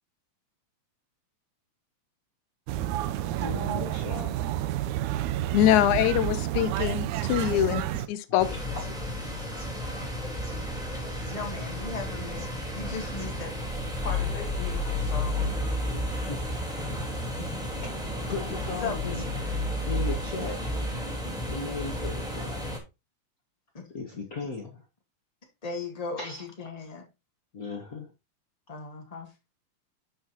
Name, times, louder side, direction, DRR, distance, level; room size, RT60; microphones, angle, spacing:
sound 1, 2.7-8.1, right 12 dB, 80° right, 2.0 m, -30 dB
voice 1, 3.4-4.3 10.9-11.4 16.3-16.5 17.8-18.0 18.3-19.2 19.9-20.6 20.9-21.1 21.4-22.7 23.9-24.8 26.2-26.4 27.5-28.1, left 4 dB, 45° left, 1.2 m, -36 dB
voice 2, 5.5-8.5, left 12 dB, 80° left, 2.2 m, -24 dB
sound 2, 7.1-7.2 7.8-8.1 8.8-8.9 9.6-9.7 10.3-10.7 10.9-11.0 11.2-11.4 12.3-12.5 13.1-13.4, right 2 dB, 45° right, 4.5 m, -52 dB
sound 3, 8.4-22.8, left 1 dB, ahead, 2.9 m, -32 dB
voice 3, 11.3-13.5 14.0-15.6 17.4-17.5 18.8-19.0 23.7-23.9 25.6-27.1 28.7-29.3, left 4 dB, 60° left, 0.4 m, -37 dB
10.5 x 6.3 x 2.9 m
omnidirectional pair, 3.5 m